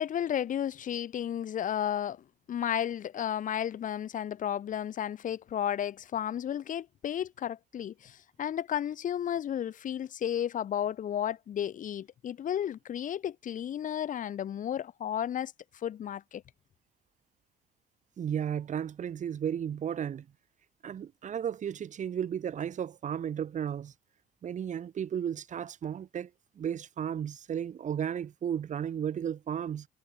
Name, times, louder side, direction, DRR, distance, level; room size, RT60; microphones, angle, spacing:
voice 1, 0.0-16.4, left 10 dB, 50° left, 1.8 m, -33 dB
voice 2, 18.2-20.3 20.8-23.9 24.4-26.3 26.6-29.9, right 8 dB, 45° right, 2.3 m, -34 dB
cardioid pair, 110°, 17 cm